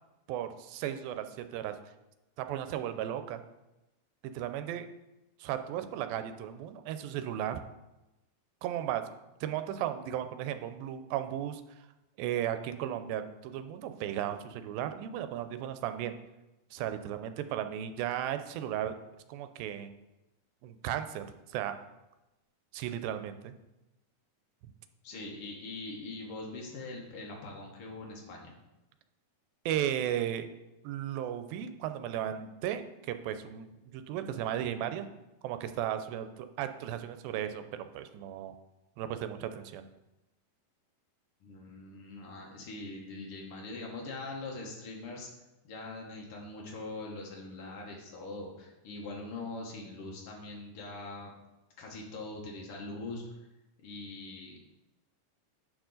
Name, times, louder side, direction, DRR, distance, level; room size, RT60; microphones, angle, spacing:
voice 1, 0.3-1.8 2.4-3.4 4.2-4.9 5.4-7.6 8.6-9.0 9.4-11.6 12.2-16.2 16.7-19.0 19.3-19.9 20.6-21.8 22.7-23.5 29.7-30.5 30.8-35.1 35.4-38.5 39.0-39.9, right 11 dB, 85° right, 10 dB, 2.3 m, -35 dB
voice 2, 25.0-28.5 41.4-45.3 45.7-51.3 51.8-53.4 53.8-54.6, left 2 dB, 90° left, -1 dB, 1.2 m, -42 dB
8.8 x 4.8 x 3.8 m, 0.97 s
omnidirectional pair, 4.1 m